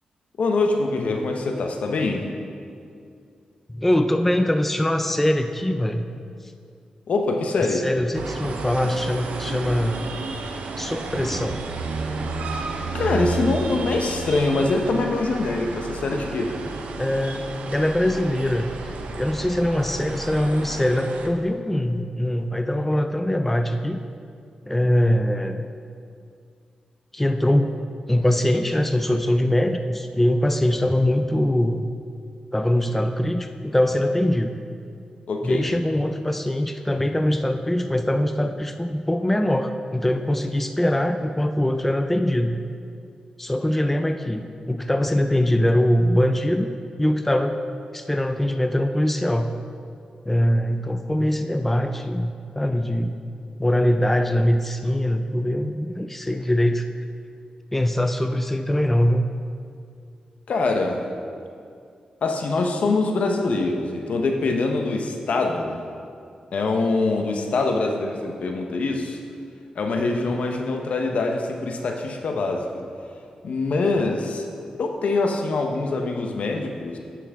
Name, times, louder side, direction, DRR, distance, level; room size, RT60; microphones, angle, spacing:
voice 1, 0.4-2.3 7.1-7.9 12.9-16.5 35.3-35.7 60.5-61.0 62.2-65.8 66.5-69.2 69.7-72.8 73.4-74.5 74.7-77.0, left 3 dB, 70° left, 3 dB, 0.8 m, -24 dB
voice 2, 3.7-6.1 7.6-10.3 10.8-11.6 17.0-17.4 17.7-24.0 24.7-25.7 27.1-27.8 28.1-31.9 32.5-34.6 35.4-42.6 43.4-46.7 47.0-47.6 47.9-49.5 50.3-53.2 53.6-56.9 57.7-59.3, left 1 dB, 10° left, 7 dB, 0.4 m, -22 dB
sound 1, 8.1-21.3, right 3 dB, 85° right, 0.6 m, -32 dB
9.5 x 6.1 x 3.5 m, 2.3 s
cardioid pair, 80°, 2 cm